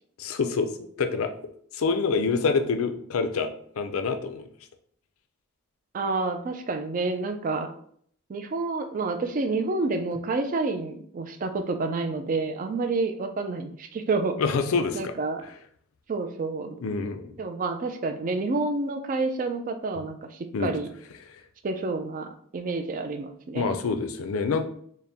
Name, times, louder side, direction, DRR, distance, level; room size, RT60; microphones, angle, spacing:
voice 1, 0.2-1.3 1.7-3.5 3.8-4.5 14.4-15.1 15.4-15.5 16.8-17.3 20.5-20.8 21.3-21.4 23.5-24.6, left 4 dB, 75° left, 8 dB, 0.4 m, -26 dB
voice 2, 5.9-7.7 8.3-14.4 14.9-15.4 16.1-16.8 17.4-20.9 21.6-23.7, right 3 dB, 40° right, 7 dB, 0.3 m, -29 dB
4.0 x 2.1 x 3.4 m, 0.62 s
head